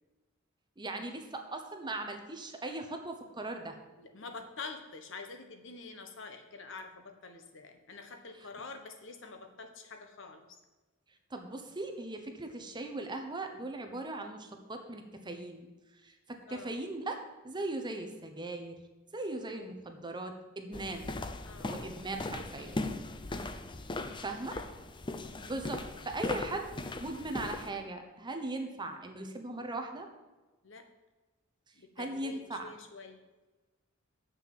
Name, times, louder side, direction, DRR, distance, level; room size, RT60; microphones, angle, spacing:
voice 1, 0.8-3.8 11.3-15.7 16.0-18.8 19.1-21.2 21.6-22.7 24.2-24.6 25.5-26.7 27.0-30.1 32.0-32.8, right 2 dB, 20° right, 5 dB, 1.0 m, -39 dB
voice 2, 4.0-10.4 16.5-16.8 21.5-21.8 23.3-23.6 24.5-24.8 30.6-30.8 31.7-33.2, left 4 dB, 65° left, 6 dB, 1.2 m, -47 dB
sound 1, 20.7-27.7, left 2 dB, 25° left, 0.6 m, -39 dB
7.5 x 6.5 x 7.5 m, 1.2 s
head